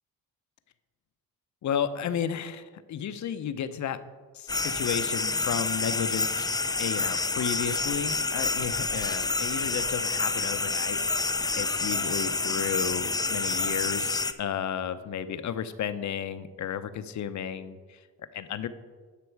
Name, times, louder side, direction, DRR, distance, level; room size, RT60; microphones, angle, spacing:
voice 1, 1.6-4.0 4.3-6.4 6.8-11.0 11.5-18.0 18.3-18.7, left 8 dB, 60° left, 11 dB, 0.7 m, -33 dB
sound 1, 4.5-14.3, left 3 dB, 10° left, 0.5 m, -28 dB
11.5 x 6.0 x 4.6 m, 1.5 s
cardioid pair, 80°, 33 cm